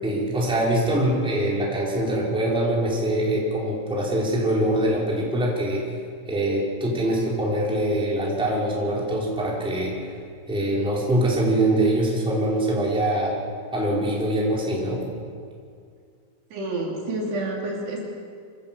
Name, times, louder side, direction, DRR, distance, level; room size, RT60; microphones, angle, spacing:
voice 1, 0.0-5.9 6.3-10.1 10.5-13.4 13.7-15.1, right 1 dB, ahead, -4 dB, 4.0 m, -23 dB
voice 2, 16.5-18.0, right 2 dB, 60° right, -2 dB, 5.1 m, -29 dB
26.0 x 17.0 x 7.7 m, 2.2 s
omnidirectional pair, 5.5 m